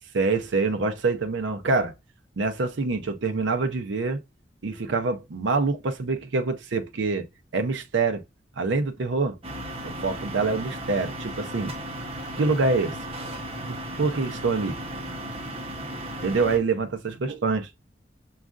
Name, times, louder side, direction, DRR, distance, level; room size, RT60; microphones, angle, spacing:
voice 1, 0.1-1.9 2.4-4.2 4.6-7.3 7.5-8.2 8.6-9.4 9.8-11.7 12.4-13.0 13.6-14.8 16.2-17.7, right 3 dB, 80° right, 0.5 m, -25 dB
sound 1, 9.4-16.6, right 1 dB, 30° right, 0.7 m, -35 dB
6.2 x 2.4 x 2.4 m
head